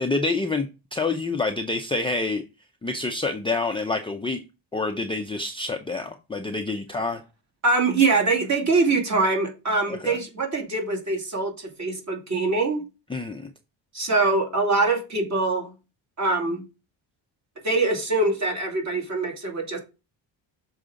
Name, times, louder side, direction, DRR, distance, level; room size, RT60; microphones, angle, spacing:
voice 1, 0.0-2.4 2.8-4.4 4.7-7.2 9.9-10.2 13.1-13.5, left 3 dB, 10° left, 0.5 m, -27 dB
voice 2, 7.6-12.8 13.9-15.7 16.2-16.6 17.6-19.8, right 3 dB, 40° right, 2.5 m, -23 dB
6.6 x 4.9 x 3.7 m
cardioid pair, 145°, 45 cm